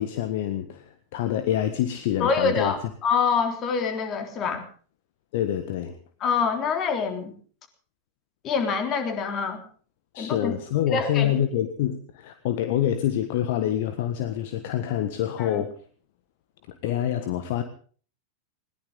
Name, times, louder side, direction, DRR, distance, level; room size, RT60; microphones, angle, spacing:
voice 1, 0.0-2.7 5.3-6.0 10.1-15.8 16.8-17.6, left 11 dB, 50° left, 10 dB, 1.5 m, -26 dB
voice 2, 2.2-4.6 6.2-7.3 8.4-9.6 10.2-10.5 10.9-11.3 15.4-15.6, left 5 dB, 30° left, 6 dB, 3.7 m, -25 dB
21.0 x 18.5 x 3.8 m, 0.43 s
figure-of-eight pair, 90°, 0 cm